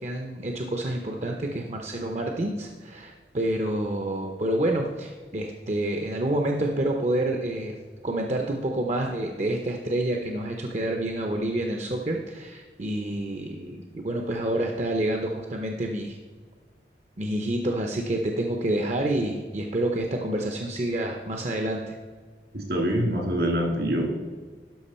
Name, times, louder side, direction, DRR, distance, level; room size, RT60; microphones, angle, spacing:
voice 1, 0.0-7.7 8.0-16.2 17.2-21.9, right 1 dB, 40° right, 2 dB, 0.6 m, -28 dB
voice 2, 22.5-24.1, equal, 70° right, 0 dB, 2.4 m, -25 dB
12.0 x 5.2 x 4.3 m, 1.5 s
head